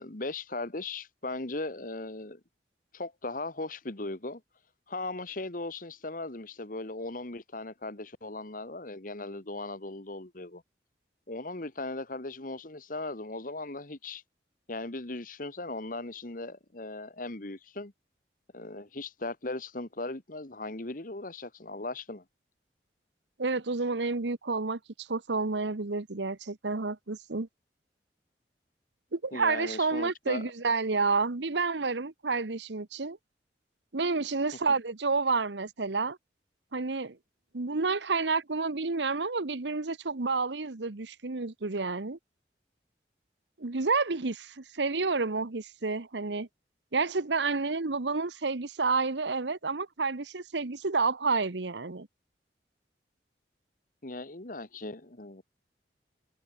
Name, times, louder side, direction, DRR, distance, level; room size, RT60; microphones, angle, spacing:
voice 1, 0.0-2.4 2.9-4.4 4.9-10.6 11.3-14.2 14.7-17.9 18.5-22.2 29.3-30.5 54.0-55.4, left 2 dB, 50° left, 1.7 m, -38 dB
voice 2, 23.4-27.5 29.1-33.2 33.9-36.2 36.7-37.2 37.5-42.2 43.6-46.5 46.9-52.1, right 4 dB, 85° right, 1.1 m, -30 dB
head